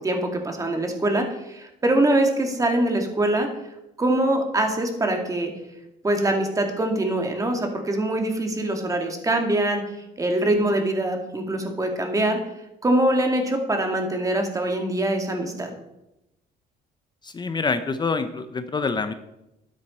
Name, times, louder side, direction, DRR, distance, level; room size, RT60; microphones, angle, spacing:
voice 1, 0.0-3.5 4.0-5.5 6.0-9.8 10.2-12.4 12.8-15.7, right 1 dB, 20° right, 3 dB, 2.5 m, -23 dB
voice 2, 17.2-19.1, left 4 dB, 25° left, 10 dB, 0.7 m, -26 dB
12.5 x 9.8 x 4.4 m, 0.89 s
cardioid pair, 110°, 17 cm